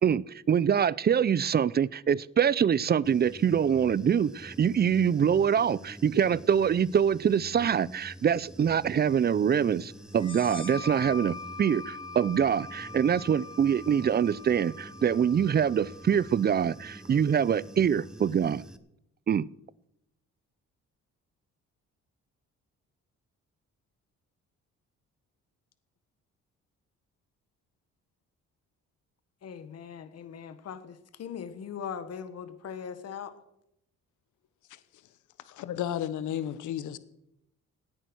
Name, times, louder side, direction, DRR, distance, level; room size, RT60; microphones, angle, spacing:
voice 1, 0.0-18.6 19.3-19.5, right 8 dB, 35° right, 0.5 m, -25 dB
Human voice / Buzz, 3.0-18.8, equal, ahead, 1.0 m, -47 dB
sound 1, 10.1-17.4, left 3 dB, 15° left, 0.5 m, -43 dB
voice 2, 29.4-33.3, left 7 dB, 55° left, 1.4 m, -40 dB
voice 3, 35.5-37.0, left 10 dB, 75° left, 1.0 m, -33 dB
17.0 x 9.2 x 6.2 m
cardioid pair, 90°, 30 cm